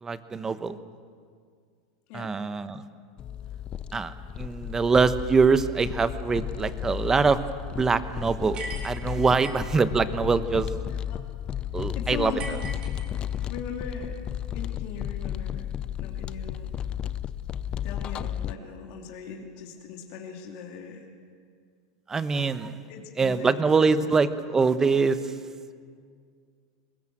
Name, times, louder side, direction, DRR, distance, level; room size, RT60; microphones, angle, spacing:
voice 1, 0.0-0.8 2.1-2.8 3.9-7.4 7.8-10.7 11.7-12.3 22.1-22.7 23.2-25.2, right 4 dB, 15° right, 12 dB, 1.0 m, -24 dB
sound 1, 3.2-18.5, left 10 dB, 30° left, 0.6 m, -33 dB
sound 2, 8.5-9.8 12.4-13.5, right 2 dB, 35° right, 4.2 m, -39 dB
voice 2, 10.9-11.2 11.9-12.6 13.5-14.2 14.5-15.7 16.0-16.8 17.8-21.1 22.9-24.1, left 7 dB, 55° left, 1 dB, 2.6 m, -39 dB
22.0 x 20.0 x 7.8 m, 2.1 s
supercardioid pair, 125°, 3 cm